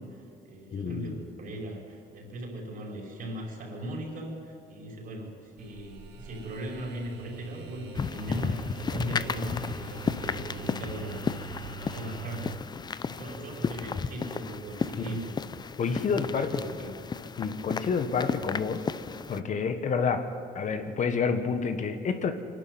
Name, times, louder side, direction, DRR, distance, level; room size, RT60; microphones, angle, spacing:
voice 1, 0.0-11.2 11.6-12.5 13.1-15.4 15.8-16.9 17.2-17.3, right 1 dB, 55° right, 0 dB, 5.7 m, -39 dB
voice 2, 0.7-1.2 15.8-16.5 17.4-18.8 19.3-20.3 20.5-22.3, left 5 dB, 45° left, 8 dB, 1.5 m, -28 dB
sound 1, 5.6-12.6, right 7 dB, 80° right, 2.5 m, -44 dB
sound 2, 7.9-19.4, left 5 dB, 25° left, 0.6 m, -34 dB
23.0 x 12.0 x 9.5 m, 2.6 s
cardioid pair, 110°, 17 cm